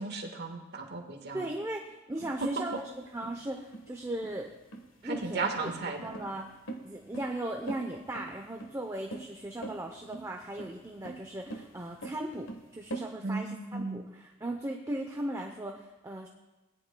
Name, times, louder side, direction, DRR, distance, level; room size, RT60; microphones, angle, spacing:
voice 1, 0.0-1.4 5.0-6.1 13.2-14.0, right 3 dB, 60° right, 2 dB, 1.6 m, -35 dB
voice 2, 1.3-4.5 5.0-6.6 6.8-16.3, right 1 dB, 15° right, 2 dB, 0.7 m, -38 dB
sound 1, 2.2-13.1, right 2 dB, 80° left, 1.4 m, -43 dB
19.0 x 11.0 x 2.3 m, 1.1 s
head